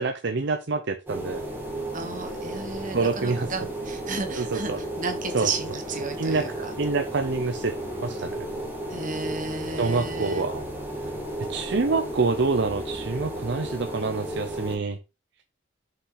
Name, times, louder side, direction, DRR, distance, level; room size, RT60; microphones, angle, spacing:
voice 1, 0.0-1.4 2.9-3.5 4.4-4.8 5.3-5.5 6.2-6.4 6.8-7.8 8.0-8.4 9.8-10.6 11.5-15.0, right 4 dB, 60° right, 7 dB, 0.6 m, -26 dB
sound 1, 1.1-14.8, right 1 dB, 10° right, 1.8 m, -34 dB
voice 2, 1.9-6.7 8.9-10.5, right 3 dB, 45° right, 5 dB, 1.5 m, -33 dB
5.8 x 5.6 x 4.0 m, 0.28 s
head